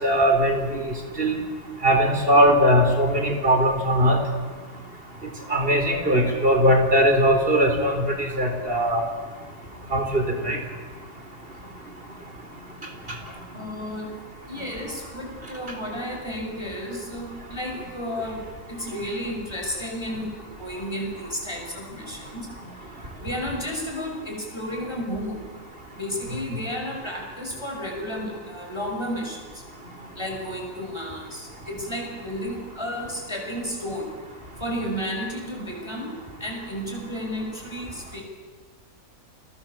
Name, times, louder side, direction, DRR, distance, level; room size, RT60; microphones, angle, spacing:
voice 1, 0.0-0.8 1.2-1.4 1.8-4.2 5.5-9.0 9.9-10.6, equal, 40° right, 4 dB, 4.3 m, -20 dB
voice 2, 13.5-14.1 14.5-22.5 23.2-25.5 25.9-29.6 30.1-34.1 34.6-36.1 36.4-38.2, equal, 15° left, 0 dB, 6.5 m, -32 dB
30.0 x 22.0 x 7.6 m, 1.5 s
omnidirectional pair, 1.6 m